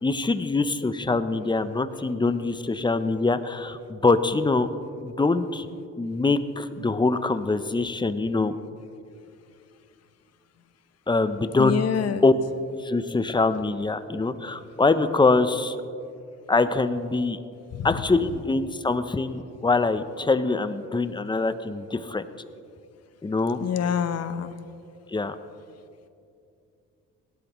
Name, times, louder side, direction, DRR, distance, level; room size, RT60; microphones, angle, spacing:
voice 1, 0.0-4.7 5.0-5.7 6.0-8.5 11.1-11.8 12.2-12.3 12.8-15.8 16.5-17.4 17.8-22.2 23.2-23.6 25.1-25.4, left 3 dB, 15° left, 11 dB, 0.6 m, -24 dB
voice 2, 11.6-12.2 17.7-17.9 23.6-24.5, left 8 dB, 55° left, 11 dB, 0.8 m, -26 dB
18.0 x 12.0 x 3.1 m, 2.5 s
cardioid pair, 90°, 30 cm